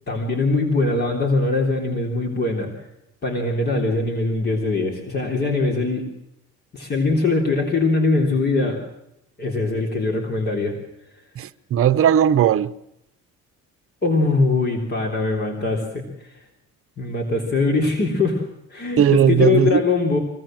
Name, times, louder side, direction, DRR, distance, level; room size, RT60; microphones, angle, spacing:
voice 1, 0.1-2.8 3.2-6.0 6.7-8.8 9.4-10.7 14.0-16.4 17.0-18.4 18.7-20.2, left 3 dB, 35° left, 3.6 m, -22 dB
voice 2, 11.4-12.7 19.0-19.8, right 10 dB, 50° right, 0.9 m, -17 dB
24.5 x 18.0 x 7.7 m
cardioid pair, 140°, 29 cm